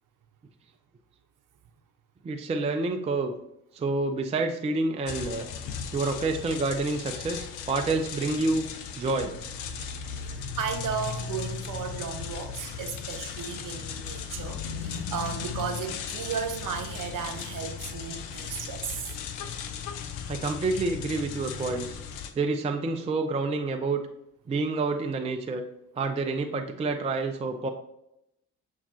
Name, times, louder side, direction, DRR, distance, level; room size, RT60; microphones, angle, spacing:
voice 1, 2.2-3.3 3.7-5.5 5.9-8.7 9.0-9.3 20.3-22.0 22.4-24.0 24.5-25.6 26.0-27.7, right 3 dB, 15° right, 0.4 m, -28 dB
sound 1, 5.1-22.3, left 7 dB, 70° left, 0.6 m, -37 dB
voice 2, 10.3-19.1, right 6 dB, 45° right, 0.8 m, -35 dB
6.9 x 2.5 x 2.7 m
figure-of-eight pair, 40°, 42 cm